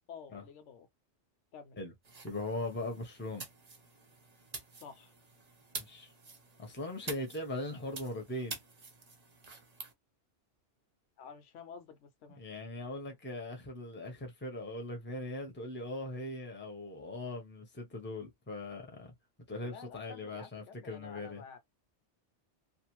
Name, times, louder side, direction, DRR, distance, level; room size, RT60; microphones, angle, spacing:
voice 1, 0.1-0.9 1.5-1.8 4.7-5.1 11.2-12.4 19.6-21.6, left 6 dB, 85° left, 1.0 m, -50 dB
sound 1, 2.0-9.9, right 3 dB, 40° right, 0.8 m, -48 dB
voice 2, 2.2-3.4 5.8-6.1 6.6-8.6 12.4-19.1 19.5-21.4, left 2 dB, 10° left, 0.7 m, -40 dB
2.6 x 2.4 x 3.0 m
omnidirectional pair, 1.2 m